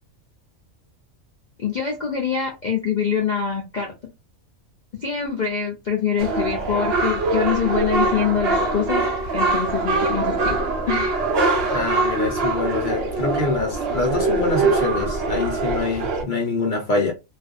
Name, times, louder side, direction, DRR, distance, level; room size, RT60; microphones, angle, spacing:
voice 1, 1.6-3.9 4.9-9.0 9.3-10.6 10.9-11.2, left 7 dB, 85° left, 0.4 m, -24 dB
sound 1, 6.2-16.2, right 3 dB, 55° right, 0.8 m, -23 dB
voice 2, 11.7-17.1, left 3 dB, 50° left, 0.6 m, -25 dB
2.5 x 2.4 x 2.4 m
omnidirectional pair, 1.5 m